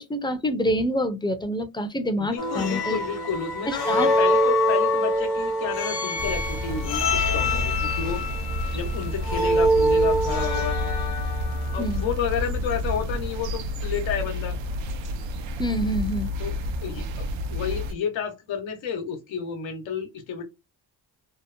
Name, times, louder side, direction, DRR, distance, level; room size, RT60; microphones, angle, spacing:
voice 1, 0.0-3.0 3.7-4.1 11.8-12.0 15.6-16.3, equal, 10° left, 0.5 m, -26 dB
voice 2, 2.2-8.2 8.7-10.8 11.7-14.6 16.4-16.5 16.8-20.4, left 6 dB, 85° left, 0.9 m, -31 dB
sound 1, 2.4-11.6, left 1 dB, 55° left, 1.1 m, -24 dB
sound 2, 6.2-17.9, left 1 dB, 80° right, 0.6 m, -29 dB
2.9 x 2.0 x 2.4 m
cardioid pair, 65°, 45 cm